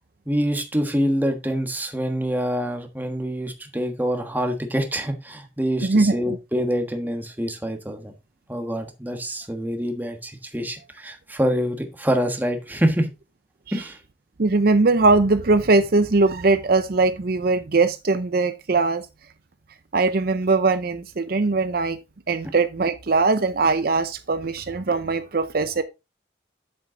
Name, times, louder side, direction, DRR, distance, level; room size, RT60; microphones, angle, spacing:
voice 1, 0.3-8.1 8.5-13.1 13.7-14.0, equal, 10° right, 1.3 m, -26 dB
voice 2, 5.8-6.4 13.7-13.8 14.4-19.1 19.9-22.0 22.3-25.8, right 3 dB, 50° right, 0.6 m, -20 dB
7.9 x 7.1 x 3.7 m
head